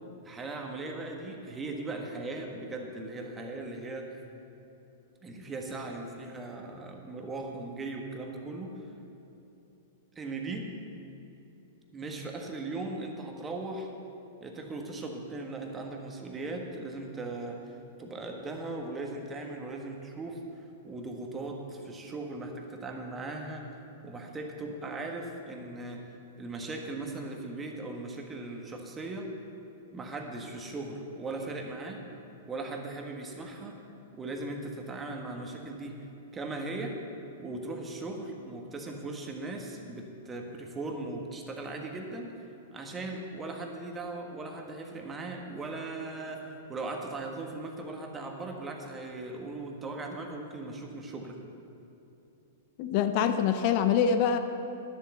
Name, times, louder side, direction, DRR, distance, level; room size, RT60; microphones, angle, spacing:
voice 1, 0.2-4.1 5.2-8.9 10.1-10.7 11.9-13.9 14.4-26.1 26.4-29.3 29.9-32.0 32.4-33.8 34.1-36.0 36.3-37.0 37.4-51.4, right 2 dB, 20° right, 2 dB, 1.5 m, -38 dB
voice 2, 52.8-54.4, left 7 dB, 50° left, 9 dB, 0.6 m, -25 dB
11.0 x 7.5 x 7.1 m, 2.9 s
hypercardioid pair, 115°, 0 cm